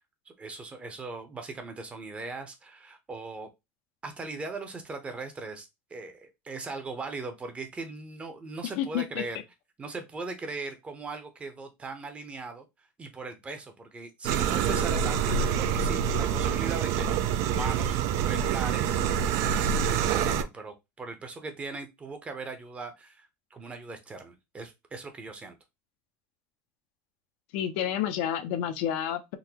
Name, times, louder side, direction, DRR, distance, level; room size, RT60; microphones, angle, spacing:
voice 1, 0.3-3.5 4.0-9.4 9.8-12.6 13.0-19.0 19.4-25.5, right 3 dB, 20° right, 0.7 m, -39 dB
voice 2, 8.8-9.2 27.5-29.4, left 10 dB, 70° left, 0.5 m, -30 dB
sound 1, 14.2-20.4, right 7 dB, 55° right, 0.3 m, -26 dB
3.8 x 2.1 x 2.9 m
supercardioid pair, 130°, 6 cm